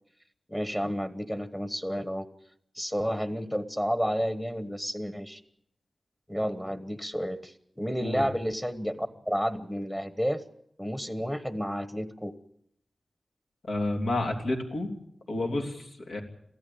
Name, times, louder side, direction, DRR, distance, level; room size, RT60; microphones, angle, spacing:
voice 1, 0.5-2.2 2.7-5.4 6.3-10.4 10.8-12.4, equal, 10° left, 11 dB, 1.2 m, -31 dB
voice 2, 13.6-14.9 15.3-16.2, left 2 dB, 85° left, 2 dB, 3.1 m, -30 dB
23.5 x 15.0 x 8.6 m, 0.75 s
wide cardioid pair, 90°, 0 cm